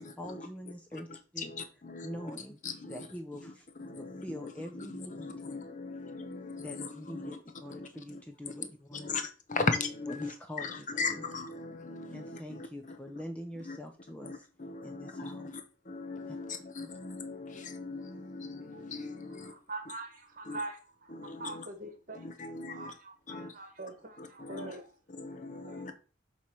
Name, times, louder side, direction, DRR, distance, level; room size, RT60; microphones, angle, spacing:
voice 1, 0.0-1.5 2.0-2.6 2.9-3.7 4.0-5.4 6.6-9.1 10.1-11.2 12.1-14.5 14.8-15.5 16.3-16.4 16.8-16.9, left 1 dB, 5° left, 0.6 m, -44 dB
voice 2, 1.4-2.4 2.6-3.1 3.8-7.4 7.7-7.9 8.9-9.2 9.5-10.3 10.6-12.7 13.7-13.8 14.2-15.5 15.9-19.4 20.5-20.6 21.1-21.6 22.2-22.9 23.3-23.5 24.2-24.7 25.2-25.9, left 4 dB, 40° left, 0.8 m, -38 dB
voice 3, 19.3-22.2 22.7-24.9 25.6-25.9, right 2 dB, 45° right, 1.2 m, -43 dB
7.1 x 3.2 x 6.0 m
head